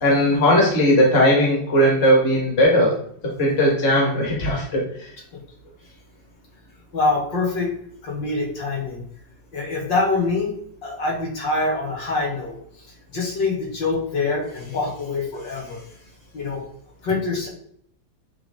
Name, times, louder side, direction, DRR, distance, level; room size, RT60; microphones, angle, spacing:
voice 1, 0.0-3.0 3.2-5.1, equal, 35° left, -2 dB, 2.0 m, -18 dB
voice 2, 6.9-7.7 8.0-9.0 9.5-10.5 10.8-15.8 16.3-16.6 17.0-17.5, left 3 dB, 75° left, -3 dB, 2.7 m, -25 dB
9.5 x 3.7 x 3.7 m, 0.63 s
omnidirectional pair, 2.0 m